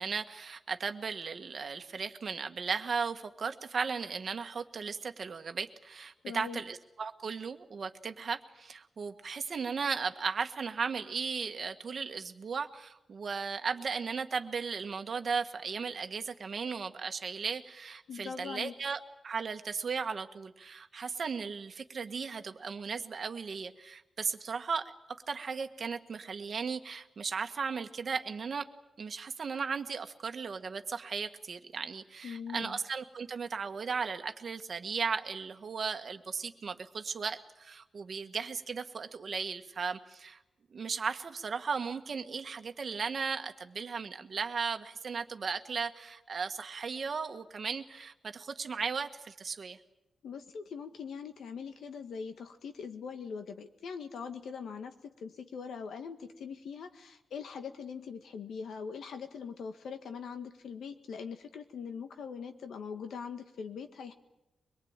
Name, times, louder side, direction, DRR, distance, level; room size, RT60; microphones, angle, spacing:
voice 1, 0.0-28.7 29.0-40.4 40.7-49.8, right 5 dB, 45° right, 7 dB, 1.5 m, -36 dB
voice 2, 6.2-6.6 18.1-18.7 32.2-32.8 50.2-64.1, left 6 dB, 85° left, 6 dB, 1.7 m, -42 dB
24.0 x 22.5 x 8.9 m, 0.93 s
wide cardioid pair, 160°, 0 cm